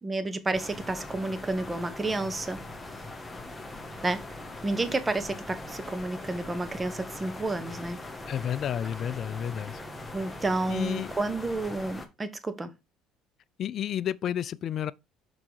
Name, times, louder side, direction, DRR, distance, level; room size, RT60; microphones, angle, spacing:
voice 1, 0.0-2.6 4.0-4.2 4.6-8.0 10.1-12.7, right 2 dB, 20° right, 1.0 m, -30 dB
sound 1, 0.5-12.1, left 2 dB, 15° left, 1.4 m, -41 dB
voice 2, 8.3-9.8 10.7-11.1 13.6-14.9, left 10 dB, 50° left, 0.4 m, -31 dB
6.0 x 4.9 x 4.7 m
supercardioid pair, 90°, 0 cm